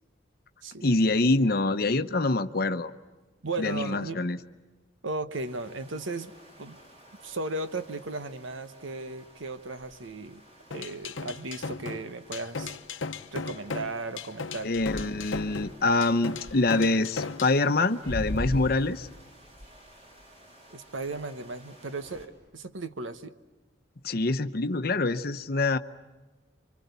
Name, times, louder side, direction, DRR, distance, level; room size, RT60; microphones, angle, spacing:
voice 1, 0.8-2.9 3.6-4.4 14.6-19.1 24.0-25.8, left 2 dB, 50° left, 10 dB, 0.9 m, -25 dB
voice 2, 3.4-4.2 5.0-6.3 6.6-6.8 7.2-10.4 10.7-12.8 13.3-14.7 20.7-23.3, right 2 dB, 85° right, 10 dB, 1.2 m, -36 dB
sound 1, 5.5-22.3, equal, 35° right, 3.9 m, -44 dB
sound 2, 10.7-17.6, left 4 dB, 85° left, 0.9 m, -36 dB
28.5 x 25.0 x 8.2 m, 1.2 s
head